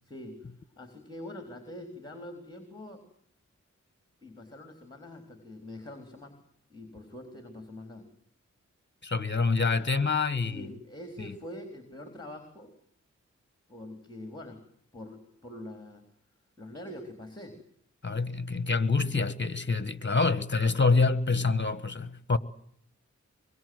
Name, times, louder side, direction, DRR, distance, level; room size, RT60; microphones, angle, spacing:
voice 1, 0.0-3.0 4.2-6.4 6.7-8.1 10.4-12.7 13.7-14.6 14.9-16.0 16.6-17.6, left 1 dB, 15° left, 3.9 m, -44 dB
voice 2, 9.0-10.7 11.2-11.3 18.0-22.4, left 4 dB, 40° left, 1.4 m, -26 dB
24.0 x 22.5 x 7.9 m
wide cardioid pair, 60°, 30 cm